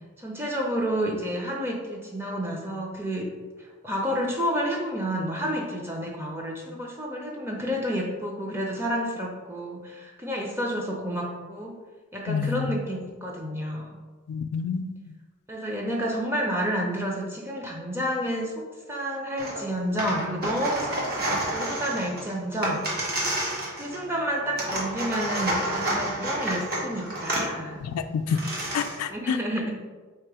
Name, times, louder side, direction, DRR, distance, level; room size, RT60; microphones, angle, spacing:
voice 1, 0.2-3.3 3.6-11.8 12.1-14.0 15.5-22.8 23.1-23.3 23.7-27.8 29.1-29.7, equal, 10° right, -1 dB, 0.5 m, -30 dB
voice 2, 12.3-12.7 14.3-15.0 27.8-28.4 28.7-29.4, left 6 dB, 85° left, 10 dB, 0.3 m, -28 dB
sound 1, 19.4-19.6 19.9-24.1 24.6-27.5 28.0-28.1 28.3-29.0, right 1 dB, 45° right, 1.0 m, -29 dB
3.6 x 2.9 x 4.7 m, 1.4 s
head